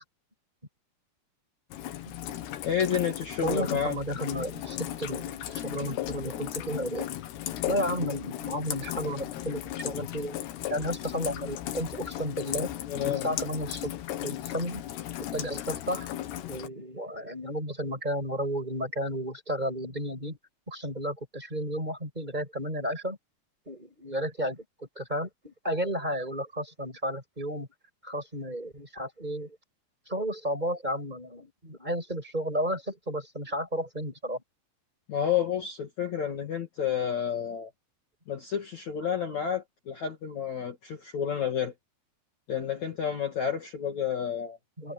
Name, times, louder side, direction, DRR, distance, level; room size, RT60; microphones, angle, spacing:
Rain, 1.7-16.7, left 12 dB, 75° left, 3.5 m, -36 dB
voice 1, 2.6-3.9 12.6-13.3 35.1-37.7 38.3-41.7 42.5-44.6, left 8 dB, 50° left, 3.1 m, -30 dB
voice 2, 3.4-7.1 7.7-10.4 10.7-12.7 13.0-13.9 14.2-14.8 15.3-16.1 16.5-20.4 20.7-23.2 23.7-27.7 28.0-29.6 30.1-34.4 44.8-44.9, equal, 10° right, 5.4 m, -33 dB
omnidirectional pair, 4.9 m